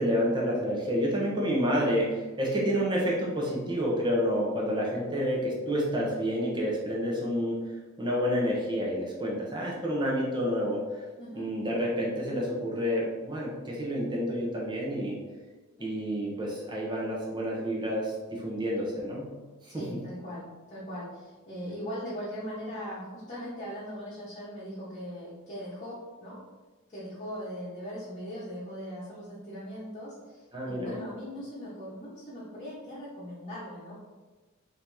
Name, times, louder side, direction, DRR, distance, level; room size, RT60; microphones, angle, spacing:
voice 1, 0.0-7.5 8.0-11.0 11.3-15.2 15.8-19.3 19.6-19.9 30.5-30.9, equal, 20° right, -4 dB, 0.8 m, -29 dB
voice 2, 11.2-11.5 15.8-16.0 19.7-26.4 26.9-33.9, equal, 30° left, -11 dB, 1.1 m, -40 dB
3.9 x 2.9 x 3.4 m, 1.2 s
head